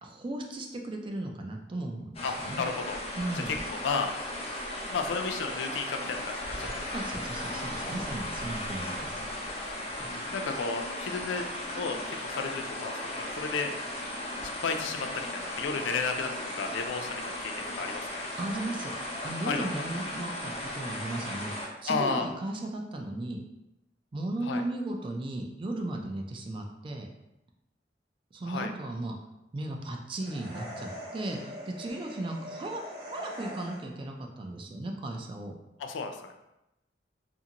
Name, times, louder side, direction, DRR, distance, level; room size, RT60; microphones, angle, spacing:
voice 1, 0.0-2.6 3.2-3.5 6.9-9.1 18.4-18.9 19.2-23.4 24.1-27.1 28.3-29.2 29.5-35.5, right 1 dB, 30° right, 2 dB, 0.3 m, -36 dB
sound 1, 2.1-21.7, left 1 dB, 35° left, 0.5 m, -36 dB
voice 2, 2.2-3.0 3.5-4.1 4.9-6.7 7.9-8.0 10.3-11.5 11.8-13.7 14.6-17.5 17.8-18.1 19.4-19.6 21.9-22.3 24.4-24.6 28.5-28.7 35.8-36.3, left 5 dB, 85° left, 5 dB, 0.3 m, -33 dB
sound 2, 30.2-34.1, equal, 60° right, 0.8 m, -43 dB
2.5 x 2.5 x 2.8 m, 0.92 s
head